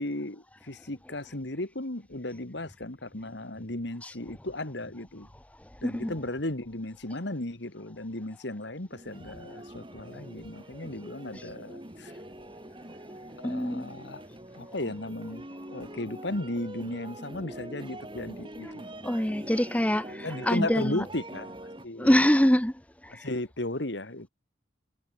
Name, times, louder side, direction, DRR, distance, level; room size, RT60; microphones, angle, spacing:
voice 1, 0.0-5.3 5.8-12.1 13.4-14.2 14.6-18.9 20.2-21.5 21.8-22.3 23.1-24.3, left 1 dB, 60° left, 2.0 m, -35 dB
voice 2, 5.8-6.1 13.4-13.9 19.0-21.0 22.0-22.7 23.0-23.3, equal, 5° left, 0.9 m, -24 dB
sound 1, 8.9-21.9, right 1 dB, 25° right, 3.3 m, -44 dB
head